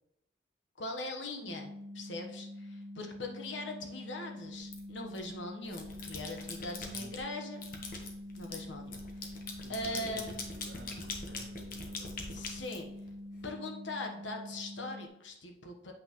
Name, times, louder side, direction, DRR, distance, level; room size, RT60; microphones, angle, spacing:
voice 1, 0.8-7.6 8.3-9.3 9.7-10.4 12.3-12.9 13.4-15.9, left 2 dB, 85° left, 3 dB, 1.2 m, -41 dB
sound 1, 1.5-15.1, left 1 dB, 20° right, 1.1 m, -46 dB
sound 2, 4.7-5.3 5.6-7.2 7.6-13.4, left 3 dB, 50° left, 1.1 m, -43 dB
voice 2, 6.7-7.2 9.6-12.5, right 2 dB, 60° right, 3 dB, 1.2 m, -53 dB
8.1 x 5.8 x 3.1 m, 0.80 s
head